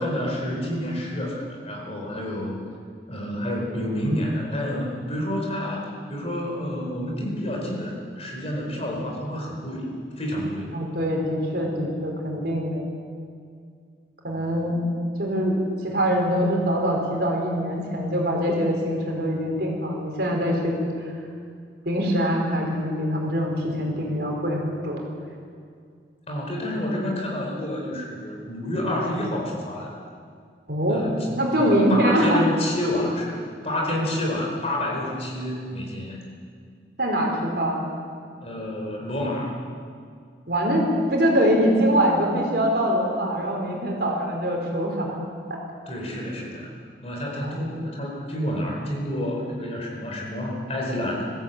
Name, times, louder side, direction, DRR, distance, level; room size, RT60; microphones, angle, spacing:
voice 1, 0.0-2.5 3.1-10.7 26.3-29.9 30.9-31.3 31.6-33.4 33.6-36.2 38.4-39.5 45.9-46.7 47.0-51.3, left 1 dB, 35° left, -1 dB, 4.5 m, -29 dB
voice 2, 10.7-12.8 14.2-14.8 15.2-21.1 21.8-25.0 30.7-31.0 31.4-32.4 37.0-37.8 40.5-40.8 41.1-45.2 45.5-45.6 47.4-47.6, equal, 55° right, 0 dB, 4.5 m, -23 dB
21.0 x 15.5 x 8.5 m, 2.2 s
head